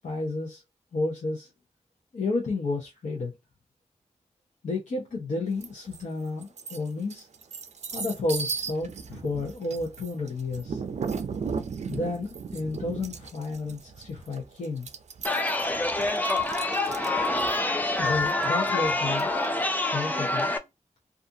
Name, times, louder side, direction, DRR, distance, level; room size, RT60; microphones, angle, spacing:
voice 1, 0.0-0.6 0.9-1.5 2.1-3.3 4.6-7.3 7.9-10.8 11.9-14.9 18.0-19.3 19.9-20.5, left 3 dB, 75° left, 0.7 m, -31 dB
sound 1, 5.6-6.0 6.4-19.7, right 5 dB, 65° right, 0.4 m, -37 dB
Chatter, 15.2-20.6, left 2 dB, 15° left, 0.4 m, -26 dB
2.4 x 2.4 x 2.7 m
wide cardioid pair, 115°, 13 cm